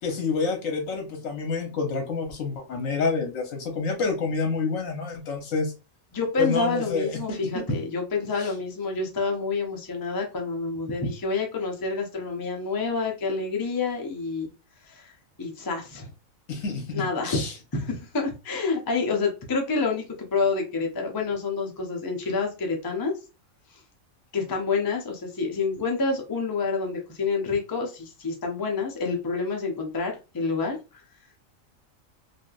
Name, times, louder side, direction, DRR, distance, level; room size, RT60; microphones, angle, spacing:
voice 1, 0.0-5.7 6.4-7.4 8.4-8.5 16.5-17.5, left 4 dB, 80° left, 1.2 m, -28 dB
voice 2, 6.1-14.5 14.9-15.1 15.4-16.1 16.9-17.4 17.7-23.1 24.3-30.8, left 4 dB, 30° left, 0.4 m, -28 dB
3.3 x 2.7 x 2.3 m
omnidirectional pair, 1.4 m